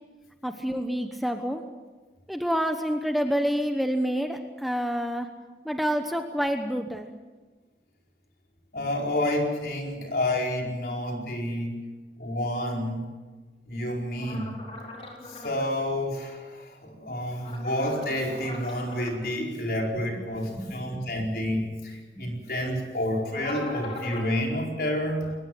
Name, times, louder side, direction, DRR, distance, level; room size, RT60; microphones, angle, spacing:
voice 1, 0.4-1.6 2.3-5.3 5.6-7.1 20.6-20.9 22.2-22.3, equal, ahead, 5 dB, 1.0 m, -28 dB
voice 2, 8.7-11.9 12.2-13.0 13.7-14.6 15.3-25.3, left 1 dB, 55° left, 1 dB, 4.8 m, -29 dB
sound 1, 14.2-15.7 17.4-19.1 23.2-24.3, left 2 dB, 35° left, 4.2 m, -40 dB
22.0 x 19.5 x 7.8 m, 1.3 s
head